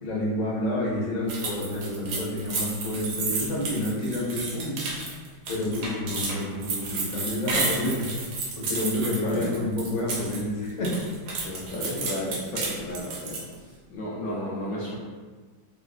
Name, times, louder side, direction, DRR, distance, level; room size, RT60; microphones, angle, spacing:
voice 1, 0.0-4.8 5.5-8.0 8.6-10.9, left 1 dB, 55° left, -4 dB, 0.9 m, -29 dB
sound 1, 1.3-10.4 10.7-13.5, right 3 dB, 85° right, 1.4 m, -32 dB
voice 2, 9.0-9.5 11.4-13.4 13.9-15.0, left 1 dB, 75° left, -5 dB, 1.1 m, -33 dB
3.1 x 2.5 x 2.3 m, 1.4 s
omnidirectional pair, 2.0 m